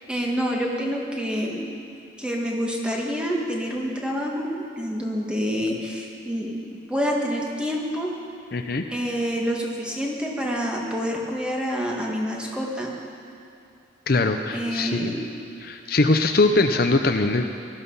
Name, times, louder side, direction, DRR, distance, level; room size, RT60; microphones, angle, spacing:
voice 1, 0.1-1.7 2.2-6.6 6.9-8.1 8.9-12.9 14.5-15.3, equal, 5° right, -2 dB, 1.7 m, -27 dB
voice 2, 8.5-8.8 14.1-15.2 15.6-17.4, left 2 dB, 50° left, 6 dB, 0.7 m, -21 dB
19.0 x 13.5 x 5.6 m, 2.5 s
head